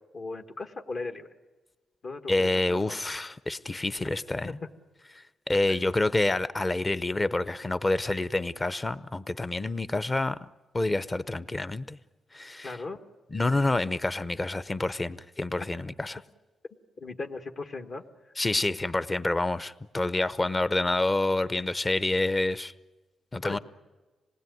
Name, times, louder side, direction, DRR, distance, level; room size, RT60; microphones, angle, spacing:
voice 1, 0.1-1.3 2.0-3.0 4.4-4.5 5.7-5.8 12.6-13.1 17.0-18.1 23.4-23.6, left 3 dB, 55° left, 5 dB, 1.4 m, -37 dB
voice 2, 2.3-4.5 5.5-10.4 10.7-12.0 12.3-12.8 13.3-16.2 18.4-22.7 23.3-23.6, left 2 dB, 25° left, 15 dB, 0.7 m, -28 dB
26.5 x 19.5 x 9.4 m, 1.3 s
cardioid pair, 90°, 0 cm